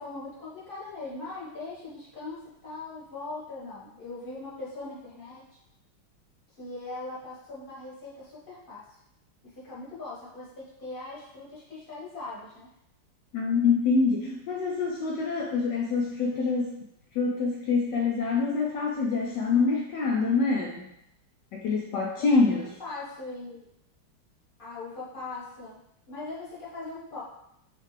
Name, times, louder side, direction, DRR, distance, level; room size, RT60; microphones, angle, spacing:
voice 1, 0.0-5.6 6.6-8.8 9.6-12.7 22.2-23.6 24.6-25.8 26.1-27.2, left 3 dB, 35° left, -7 dB, 0.9 m, -40 dB
voice 2, 13.3-16.8 17.1-20.9 21.5-22.7, left 4 dB, 80° left, -1 dB, 0.9 m, -25 dB
5.5 x 2.5 x 3.2 m, 0.79 s
omnidirectional pair, 2.4 m